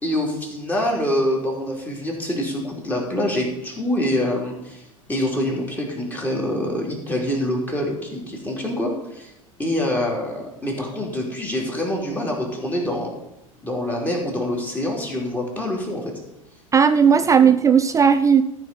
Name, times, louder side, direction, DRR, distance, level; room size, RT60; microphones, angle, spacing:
voice 1, 0.0-4.8 5.1-9.3 9.6-13.1 13.6-16.1 17.0-17.1, left 1 dB, 10° left, 0 dB, 2.9 m, -25 dB
voice 2, 16.7-18.4, right 7 dB, 20° right, 10 dB, 0.4 m, -15 dB
13.5 x 4.9 x 5.3 m, 0.85 s
figure-of-eight pair, 80°, 18 cm